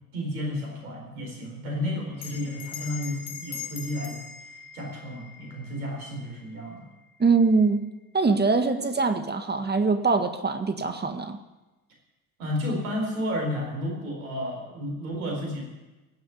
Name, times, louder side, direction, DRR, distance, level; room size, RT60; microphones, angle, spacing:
voice 1, 0.1-4.2 4.7-6.8 12.4-15.7, left 1 dB, 85° right, 0 dB, 4.4 m, -32 dB
Bell, 2.2-7.0, left 7 dB, 60° left, 2.1 m, -42 dB
voice 2, 7.2-7.9 8.1-11.4, right 4 dB, 25° right, 7 dB, 1.7 m, -23 dB
18.0 x 7.7 x 9.7 m, 1.1 s
hypercardioid pair, 60°, 42 cm